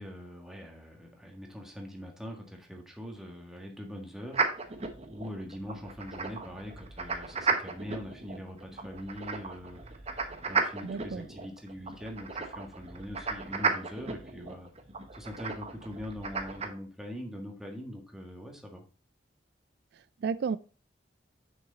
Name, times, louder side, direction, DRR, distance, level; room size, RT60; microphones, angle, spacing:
voice 1, 0.0-4.4 5.1-10.0 10.4-14.7 15.1-18.8, equal, 5° right, 1 dB, 1.5 m, -42 dB
sound 1, 4.3-16.7, right 4 dB, 35° right, 0.9 m, -35 dB
voice 2, 10.8-11.3 19.9-20.6, right 5 dB, 65° right, 15 dB, 0.3 m, -33 dB
6.2 x 6.1 x 3.9 m, 0.37 s
head